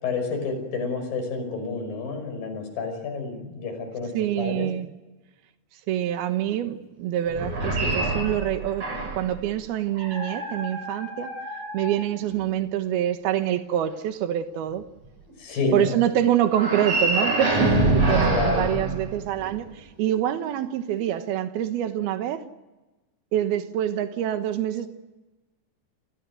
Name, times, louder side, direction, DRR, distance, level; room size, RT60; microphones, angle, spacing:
voice 1, 0.0-4.1 4.4-4.7 15.4-16.0 18.3-18.7, left 4 dB, 65° left, 6 dB, 7.2 m, -29 dB
voice 2, 4.1-4.9 5.9-11.3 11.7-14.8 15.7-22.4 23.3-24.9, right 11 dB, 85° right, 8 dB, 3.3 m, -26 dB
sound 1, 7.3-9.3 10.0-12.4 16.5-19.6, right 2 dB, 40° right, 8.6 m, -26 dB
30.0 x 19.0 x 9.2 m, 1.1 s
omnidirectional pair, 4.3 m